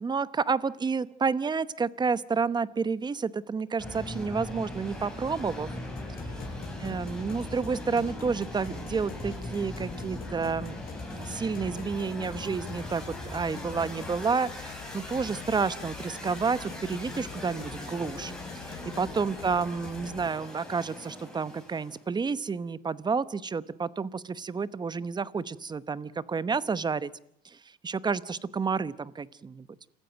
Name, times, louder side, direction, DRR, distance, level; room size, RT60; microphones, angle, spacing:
voice 1, 0.0-5.7 6.8-10.8 11.1-18.3 18.6-27.1 27.4-27.6 27.8-29.7, right 5 dB, 25° right, 17 dB, 0.9 m, -30 dB
sound 1, 3.8-22.1, left 1 dB, 5° left, 5.9 m, -40 dB
sound 2, 6.0-20.3, left 9 dB, 60° left, 1.2 m, -45 dB
27.0 x 15.0 x 9.0 m, 0.71 s
cardioid pair, 110°, 17 cm